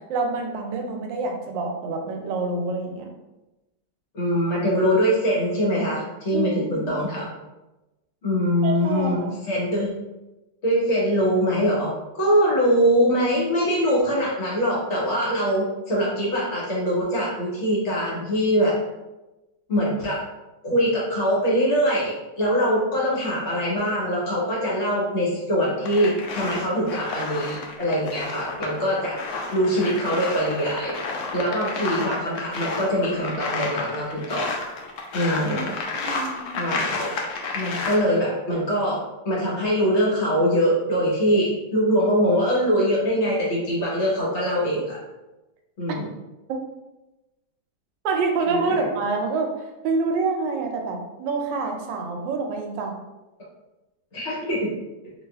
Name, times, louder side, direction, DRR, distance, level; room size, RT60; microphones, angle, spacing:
voice 1, 0.1-3.1 6.3-7.0 8.6-9.4 35.5-35.6 35.9-36.6 48.0-52.9, right 4 dB, 85° right, 3 dB, 1.3 m, -27 dB
voice 2, 4.1-7.3 8.2-9.9 10.6-18.8 19.7-20.2 20.6-29.2 29.5-30.9 31.3-34.5 35.1-35.7 36.6-37.1 37.5-45.0 45.8-46.1 48.5-48.9 54.1-54.7, equal, 45° left, -5 dB, 1.1 m, -23 dB
sound 1, 25.8-38.0, left 3 dB, 85° left, 0.6 m, -31 dB
3.9 x 2.7 x 2.3 m, 1.0 s
omnidirectional pair, 1.9 m